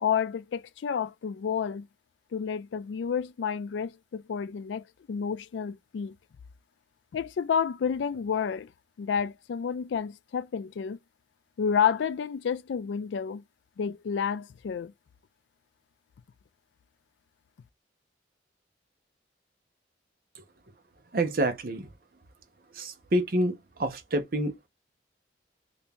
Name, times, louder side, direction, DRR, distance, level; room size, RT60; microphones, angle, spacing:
voice 1, 0.0-1.9 2.3-6.2 7.1-8.7 9.0-11.0 11.6-13.4 13.8-14.9, left 7 dB, 75° left, 0.3 m, -30 dB
voice 2, 21.1-21.9 22.7-24.7, right 1 dB, 50° right, 0.6 m, -28 dB
2.8 x 2.6 x 3.4 m
head